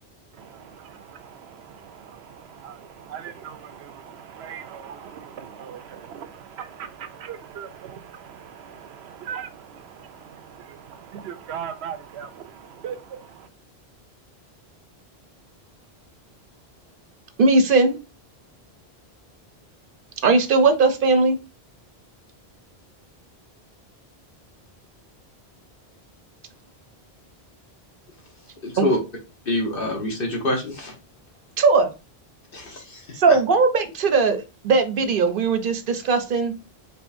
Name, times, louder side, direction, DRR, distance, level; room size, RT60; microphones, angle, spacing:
voice 1, 0.3-13.5, right 8 dB, 85° right, 0.9 m, -39 dB
voice 2, 17.4-17.9 20.2-21.4 28.8-28.9 31.6-31.9 33.2-36.5, right 4 dB, 60° right, 0.8 m, -19 dB
voice 3, 28.6-29.0 29.5-31.0 32.5-33.4, left 1 dB, 60° left, 1.3 m, -26 dB
4.9 x 3.3 x 2.6 m
omnidirectional pair, 1.1 m